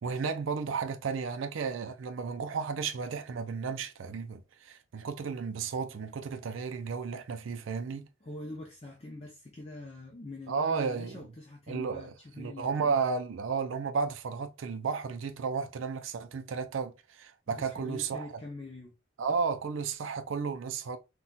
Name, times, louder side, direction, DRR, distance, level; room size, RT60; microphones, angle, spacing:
voice 1, 0.0-8.1 10.5-11.2 11.7-12.0 12.4-18.3 19.2-21.0, right 5 dB, 80° right, 0.4 m, -33 dB
voice 2, 8.2-12.9 17.5-18.9, left 2 dB, 30° left, 0.5 m, -44 dB
4.1 x 2.2 x 2.2 m
head